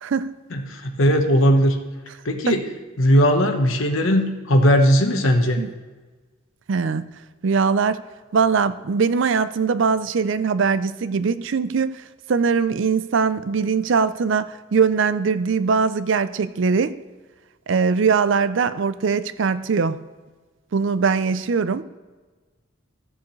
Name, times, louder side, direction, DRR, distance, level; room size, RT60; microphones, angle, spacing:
voice 1, 0.0-0.3 2.5-2.6 5.6-5.7 6.7-7.1 7.4-8.0 8.3-12.0 12.3-16.9 17.7-20.0 20.7-21.8, right 5 dB, 65° right, 0.4 m, -21 dB
voice 2, 0.5-1.8 2.2-2.6 3.0-5.6, equal, 75° left, 1.1 m, -18 dB
15.0 x 7.1 x 3.2 m
head